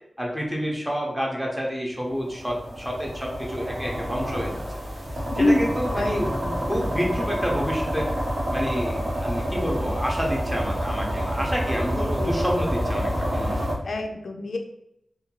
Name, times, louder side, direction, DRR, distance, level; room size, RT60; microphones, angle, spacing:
voice 1, 0.2-4.8 5.4-8.1 8.5-13.6, equal, 5° right, -1 dB, 0.6 m, -29 dB
sound 1, 2.2-13.7, equal, 60° right, 0.8 m, -28 dB
voice 2, 5.3-6.7 11.9-12.7 13.9-14.6, left 2 dB, 70° left, 3 dB, 0.3 m, -27 dB
2.7 x 2.2 x 2.9 m, 0.78 s
wide cardioid pair, 95°, 0 cm